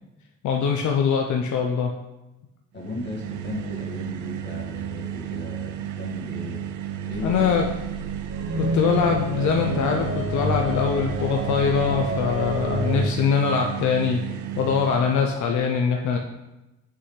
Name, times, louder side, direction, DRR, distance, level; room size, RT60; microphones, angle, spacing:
voice 1, 0.4-1.9 7.2-7.7 8.6-16.2, left 6 dB, 75° left, 2 dB, 0.7 m, -23 dB
voice 2, 2.7-6.6 7.1-7.5, left 2 dB, 35° left, -4 dB, 1.8 m, -35 dB
sound 1, 2.8-15.4, right 10 dB, 80° right, 0.5 m, -33 dB
sound 2, 7.1-13.1, right 1 dB, 50° right, 2.2 m, -29 dB
6.1 x 5.6 x 3.2 m, 0.99 s
cardioid pair, 90°, 30 cm